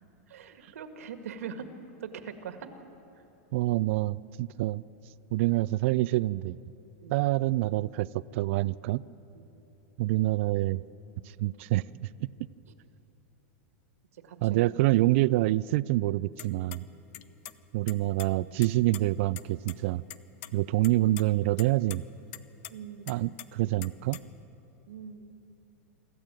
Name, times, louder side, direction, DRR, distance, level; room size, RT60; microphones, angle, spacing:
voice 1, 0.3-1.7 2.0-2.7 7.0-7.2 9.3-9.7 12.7-12.8 14.1-14.7 17.3-17.4 22.7-23.3 24.9-25.3, right 7 dB, 85° right, 8 dB, 1.8 m, -42 dB
voice 2, 3.5-4.8 5.3-6.6 7.1-9.0 10.0-10.8 11.4-11.8 12.2-12.3 14.4-16.9 17.7-20.0 20.5-22.0 23.1-24.2, right 17 dB, 60° right, 18 dB, 0.4 m, -26 dB
sound 1, 16.4-16.8 17.1-17.6 17.9-19.0 19.4-19.5 19.7-19.8 20.1-20.5 20.8-21.2 21.6-22.0 22.3-22.7 23.1-24.4, left 14 dB, 55° left, 0.8 m, -42 dB
25.0 x 14.0 x 9.0 m, 2.9 s
supercardioid pair, 135°, 8 cm